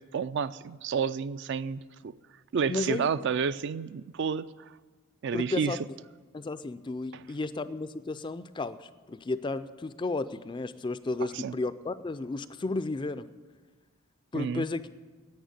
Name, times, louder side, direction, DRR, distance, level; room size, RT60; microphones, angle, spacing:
voice 1, 0.0-2.1 2.5-4.5 5.2-5.8 7.1-7.2 11.3-11.5 14.3-14.7, right 6 dB, 55° right, 15 dB, 0.3 m, -30 dB
voice 2, 2.7-3.1 5.3-5.8 6.3-13.3 14.3-14.9, left 3 dB, 20° left, 13 dB, 0.3 m, -33 dB
10.0 x 9.0 x 9.4 m, 1.4 s
head